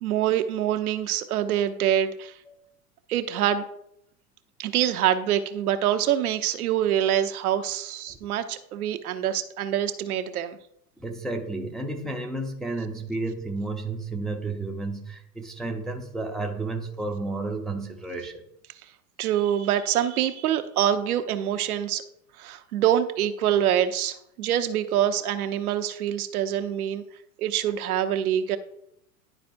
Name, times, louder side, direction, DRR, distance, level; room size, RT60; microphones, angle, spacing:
voice 1, 0.0-2.3 3.1-3.6 4.6-10.6 19.2-22.0 22.4-27.0 27.4-28.6, right 10 dB, 75° right, 8 dB, 0.8 m, -25 dB
voice 2, 11.0-18.4, right 2 dB, ahead, 1 dB, 0.6 m, -32 dB
11.0 x 4.1 x 2.6 m, 0.76 s
hypercardioid pair, 100°, 45 cm